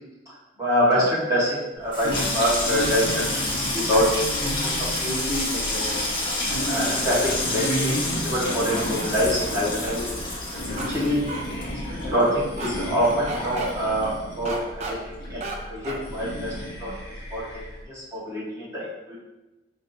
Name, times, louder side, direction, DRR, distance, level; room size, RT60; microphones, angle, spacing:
voice 1, 0.6-3.2 3.6-4.0 4.6-5.8 6.7-10.0 10.7-11.2 11.7-16.5 16.8-16.9 17.3-17.4 17.9-19.1, equal, 15° right, -9 dB, 1.3 m, -25 dB
Water tap faucet / Sink (filling or washing), 1.8-14.6 14.9-15.6 15.8-16.2, left 2 dB, 30° left, 1.0 m, -29 dB
sound 1, 2.0-17.8, equal, 75° left, 0.9 m, -34 dB
sound 2, 8.4-10.0 10.8-10.9 11.3-11.4 12.6-12.7 13.0-13.7 14.4-14.9 15.4-15.6 15.8-16.0, right 2 dB, 35° right, 0.4 m, -34 dB
4.6 x 2.9 x 2.7 m, 1.1 s
head